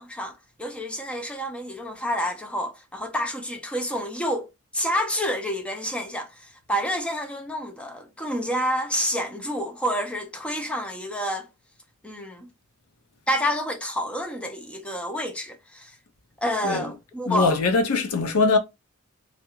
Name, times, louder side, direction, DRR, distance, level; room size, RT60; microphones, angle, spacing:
voice 1, 0.0-4.5 4.7-11.5 12.0-12.5 13.3-16.0 16.4-17.5, equal, 5° left, 0.4 m, -29 dB
voice 2, 17.3-18.6, left 3 dB, 90° left, 0.6 m, -22 dB
2.3 x 2.1 x 2.9 m
head